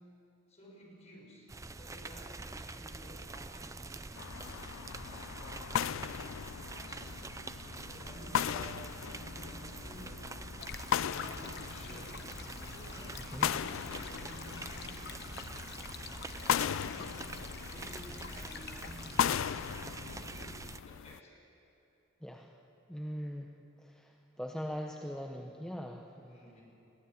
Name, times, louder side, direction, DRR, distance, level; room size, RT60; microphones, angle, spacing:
voice 1, 0.5-4.2 4.9-6.1 6.5-7.2 7.8-10.3 10.9-12.3 12.7-15.3 16.3-21.4 26.3-26.6, equal, 35° left, -3 dB, 6.2 m, -53 dB
sound 1, 1.5-20.8, right 3 dB, 15° right, 0.5 m, -45 dB
sound 2, 4.2-21.2, left 9 dB, 70° left, 0.4 m, -38 dB
Stream, 10.6-19.4, left 6 dB, 55° left, 1.0 m, -48 dB
voice 2, 22.2-22.5 22.9-23.5 23.8-26.6, equal, 5° left, 1 dB, 0.9 m, -41 dB
22.0 x 15.0 x 9.2 m, 2.9 s
head